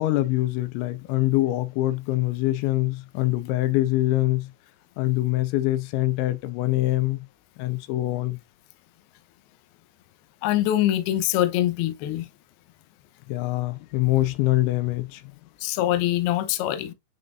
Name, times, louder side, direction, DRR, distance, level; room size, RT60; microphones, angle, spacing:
voice 1, 0.0-4.5 5.0-7.3 7.6-8.4 13.3-15.2, left 17 dB, 90° left, 3.1 m, -24 dB
voice 2, 10.4-12.3 15.6-16.9, left 13 dB, 75° left, 2.5 m, -24 dB
9.6 x 4.0 x 2.5 m
omnidirectional pair, 5.2 m